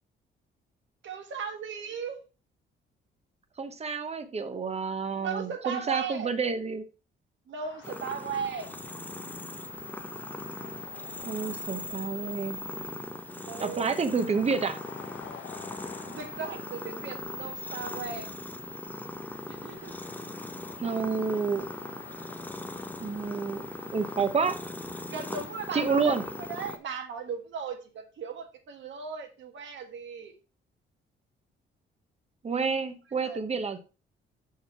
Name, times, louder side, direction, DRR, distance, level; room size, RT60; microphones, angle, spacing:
voice 1, 1.0-2.2 5.2-6.3 7.5-8.7 13.4-13.9 16.1-18.3 19.5-19.9 22.8-22.9 23.3-23.5 25.1-26.1 26.5-30.3 33.2-33.4, right 6 dB, 65° right, 5 dB, 1.5 m, -37 dB
voice 2, 3.6-6.8 11.2-12.6 13.6-14.8 20.8-21.7 23.0-23.6 23.9-24.6 25.7-26.2 32.4-33.8, right 5 dB, 30° right, 9 dB, 1.0 m, -29 dB
sound 1, 7.6-26.5, left 7 dB, 70° left, 1.0 m, -49 dB
sound 2, 7.8-26.8, left 2 dB, 10° left, 0.7 m, -40 dB
6.4 x 4.8 x 4.3 m, 0.32 s
cardioid pair, 90°, 21 cm